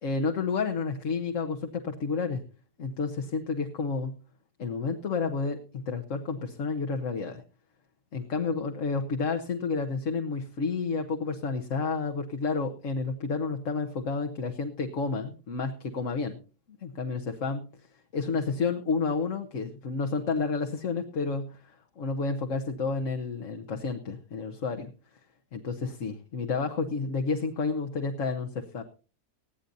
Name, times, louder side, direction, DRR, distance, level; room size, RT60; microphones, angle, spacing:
voice 1, 0.0-2.4 2.8-4.1 4.6-7.4 8.1-16.4 16.8-17.7 18.1-24.9 25.5-28.8, left 4 dB, 55° left, 5 dB, 1.4 m, -30 dB
20.0 x 14.5 x 2.7 m, 0.35 s
omnidirectional pair, 1.7 m